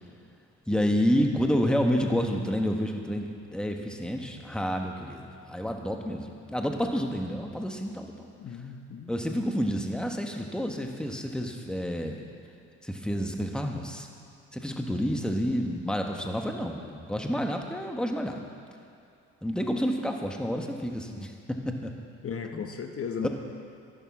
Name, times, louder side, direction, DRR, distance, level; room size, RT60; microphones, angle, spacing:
voice 1, 0.7-8.3 9.1-12.2 12.8-14.1 14.5-18.4 19.4-21.9 22.5-22.7 23.2-23.3, equal, 5° left, 3 dB, 1.3 m, -29 dB
voice 2, 8.4-9.1 22.2-23.3, left 6 dB, 50° left, 5 dB, 0.9 m, -35 dB
12.0 x 11.5 x 6.1 m, 2.5 s
cardioid pair, 90°, 30 cm